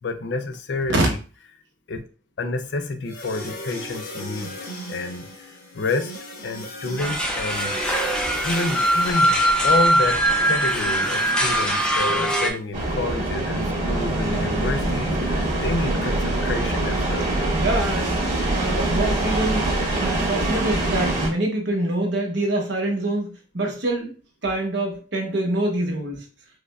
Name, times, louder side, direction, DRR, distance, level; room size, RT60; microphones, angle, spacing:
voice 1, 0.0-1.2 1.9-2.0 2.4-4.5 4.9-5.5 5.7-6.1 6.4-7.8 8.4-17.3, left 3 dB, 75° left, 7 dB, 0.5 m, -29 dB
sound 1, 3.1-12.2, equal, 55° left, 0.8 m, -38 dB
sound 2, 7.0-12.5, right 1 dB, 5° left, 0.5 m, -21 dB
sound 3, 12.7-21.3, right 1 dB, 45° right, 1.7 m, -24 dB
voice 2, 17.5-19.7 20.0-24.1 24.4-26.2, right 1 dB, 75° right, 1 dB, 1.0 m, -25 dB
4.7 x 2.1 x 2.3 m, 0.36 s
head